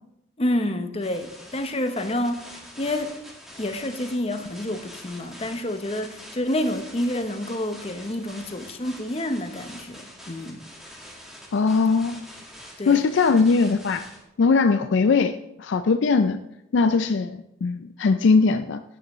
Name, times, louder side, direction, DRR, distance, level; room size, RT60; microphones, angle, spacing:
voice 1, 0.4-2.4 2.8-3.1 3.6-10.6 12.8-13.0, left 1 dB, 30° left, 7 dB, 0.8 m, -28 dB
sound 1, 1.0-14.2, equal, ahead, 1.7 m, -45 dB
voice 2, 11.5-12.2 12.9-14.0 14.4-16.4 16.7-18.8, left 4 dB, 60° left, 9 dB, 0.4 m, -20 dB
11.5 x 9.9 x 3.1 m, 0.84 s
head